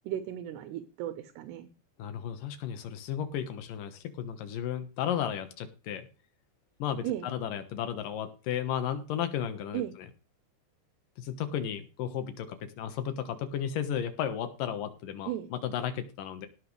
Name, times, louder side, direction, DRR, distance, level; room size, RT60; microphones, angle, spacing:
voice 1, 0.1-1.7 7.0-7.3 9.7-10.0 15.3-15.5, right 12 dB, 75° right, 9 dB, 2.8 m, -35 dB
voice 2, 2.0-6.1 6.8-9.8 11.2-16.5, left 9 dB, 65° left, 8 dB, 2.4 m, -34 dB
18.0 x 7.7 x 3.3 m, 0.35 s
omnidirectional pair, 5.3 m